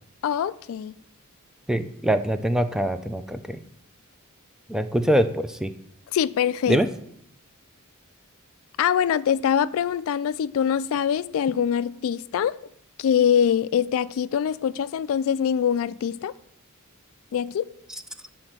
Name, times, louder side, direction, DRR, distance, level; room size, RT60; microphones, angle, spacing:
voice 1, 0.2-0.9 6.1-6.8 8.8-12.6 13.0-16.3 17.3-17.7, left 8 dB, 65° left, 0.3 m, -23 dB
voice 2, 1.7-3.6 4.7-5.7 6.7-6.9, equal, 5° right, 0.4 m, -23 dB
9.7 x 4.3 x 7.4 m
head